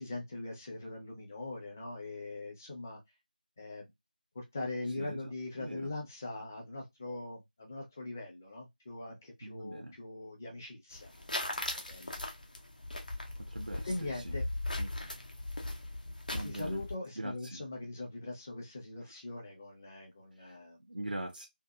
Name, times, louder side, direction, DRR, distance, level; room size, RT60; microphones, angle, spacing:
voice 1, 0.0-3.0 3.6-3.9 4.3-11.1 11.5-12.2 13.8-14.4 16.4-20.8, left 2 dB, 15° left, 0.5 m, -41 dB
voice 2, 5.0-5.9 9.4-10.0 13.4-14.4 14.8-15.2 16.3-16.8 17.2-17.6 19.0-19.1 20.3-21.5, right 1 dB, 85° right, 0.5 m, -42 dB
sound 1, 10.9-17.0, left 1 dB, 55° left, 0.7 m, -39 dB
2.6 x 2.2 x 2.2 m
figure-of-eight pair, 165°, 5 cm